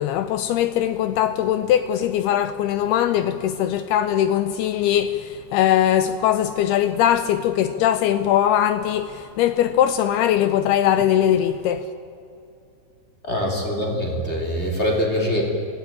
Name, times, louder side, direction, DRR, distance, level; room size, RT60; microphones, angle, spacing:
voice 1, 0.0-11.9, left 11 dB, 80° left, 2.3 m, -21 dB
voice 2, 13.2-15.4, equal, 15° left, 3.0 m, -23 dB
23.0 x 17.0 x 8.9 m
omnidirectional pair, 5.3 m